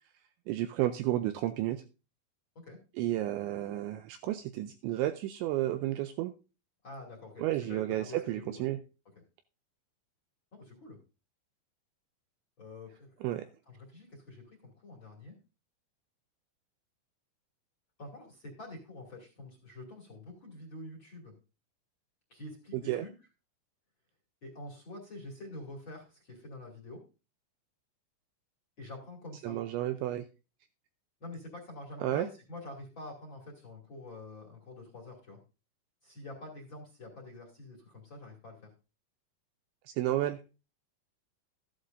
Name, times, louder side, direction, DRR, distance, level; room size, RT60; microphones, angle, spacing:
voice 1, 0.5-1.8 3.0-6.3 7.4-8.8 13.2-13.5 22.7-23.1 29.4-30.2 32.0-32.3 39.9-40.5, right 14 dB, 85° right, 9 dB, 2.7 m, -32 dB
voice 2, 6.8-8.6 10.5-11.0 12.6-13.3 13.7-15.4 18.0-21.3 22.3-23.1 24.4-27.0 28.8-29.6 31.2-35.4 36.0-38.7, left 2 dB, 35° left, 1 dB, 2.1 m, -47 dB
14.0 x 11.5 x 2.6 m, 0.32 s
omnidirectional pair, 5.9 m